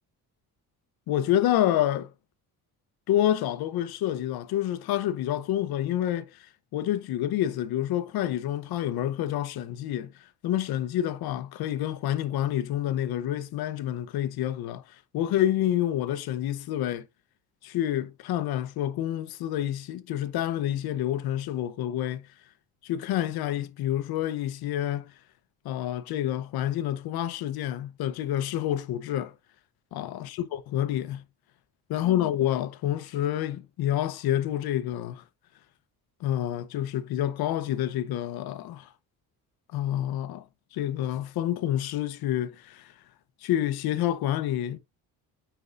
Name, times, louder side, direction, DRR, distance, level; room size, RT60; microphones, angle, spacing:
voice 1, 1.1-2.1 3.1-6.4 6.7-10.1 10.4-14.8 15.1-17.0 17.6-22.2 22.8-25.1 25.6-29.3 29.9-31.2 31.9-35.2 36.2-38.9 39.7-40.4 40.7-42.9 43.4-44.8, left 12 dB, 80° left, 0.9 m, -28 dB
9.3 x 4.7 x 2.5 m
cardioid pair, 155°, 36 cm